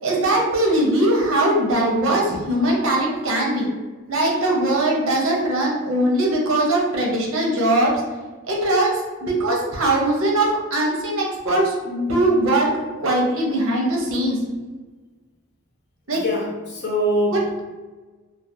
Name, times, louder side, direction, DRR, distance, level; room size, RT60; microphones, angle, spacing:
voice 1, 0.0-3.7 4.1-8.0 8.4-12.7 13.0-14.4 16.1-16.2 17.3-17.6, right 1 dB, 80° right, -2 dB, 0.6 m, -20 dB
voice 2, 16.2-17.6, equal, 50° left, -4 dB, 0.6 m, -23 dB
2.3 x 2.1 x 2.7 m, 1.3 s
head